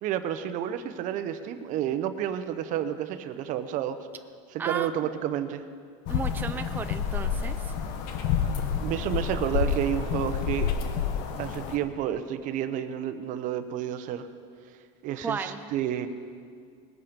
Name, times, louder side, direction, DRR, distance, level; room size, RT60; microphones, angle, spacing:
voice 1, 0.0-4.0 4.6-5.6 8.8-10.7 11.4-14.3 15.0-16.1, right 10 dB, 55° right, 10 dB, 0.9 m, -30 dB
voice 2, 4.6-4.9 6.1-7.7 15.2-15.7, right 5 dB, 10° right, 8 dB, 0.5 m, -34 dB
sound 1, 6.1-11.8, left 7 dB, 70° left, 1.3 m, -29 dB
19.5 x 8.6 x 5.3 m, 2.2 s
supercardioid pair, 120°, 16 cm